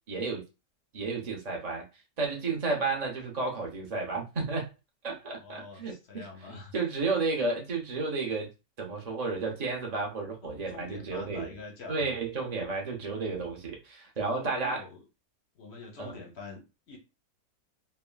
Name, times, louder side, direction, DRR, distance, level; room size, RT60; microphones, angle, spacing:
voice 1, 0.1-0.4 0.9-1.9 2.2-4.7 5.0-8.5 8.8-11.5 11.9-14.8 16.0-16.2, right 3 dB, 50° right, 0.4 m, -32 dB
voice 2, 5.3-6.7 10.4-12.1 14.2-15.0 15.5-17.0, left 3 dB, 55° left, 0.8 m, -45 dB
3.3 x 2.1 x 2.2 m
omnidirectional pair, 1.8 m